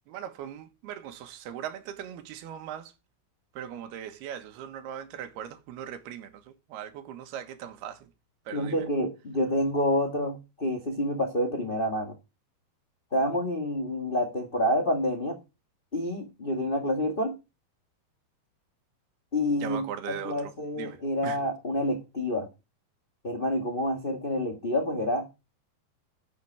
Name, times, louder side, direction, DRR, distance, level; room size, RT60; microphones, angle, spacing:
voice 1, 0.1-2.9 3.6-6.3 6.7-8.1 8.5-8.9 19.6-21.0 21.2-21.4, right 9 dB, 85° right, 3.4 m, -39 dB
voice 2, 8.5-12.1 13.1-15.4 15.9-17.3 19.3-22.5 23.2-25.3, left 1 dB, 65° left, 0.5 m, -28 dB
14.0 x 8.3 x 4.7 m
omnidirectional pair, 4.5 m